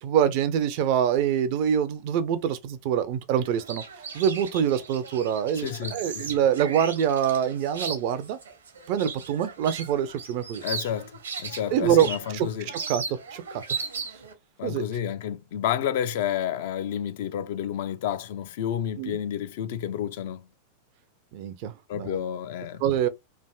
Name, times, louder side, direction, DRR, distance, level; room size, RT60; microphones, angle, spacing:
voice 1, 0.0-3.8 4.1-8.4 8.9-10.6 11.7-12.1 12.3-13.6 14.6-14.8 19.0-19.2 21.3-22.2 22.8-23.1, right 9 dB, 45° right, 0.4 m, -25 dB
sound 1, 3.4-14.3, right 5 dB, 70° right, 0.8 m, -37 dB
voice 2, 5.6-6.3 10.6-12.7 14.6-20.5 21.9-22.8, left 10 dB, 55° left, 0.4 m, -30 dB
3.3 x 2.5 x 2.2 m
figure-of-eight pair, 90°, 0 cm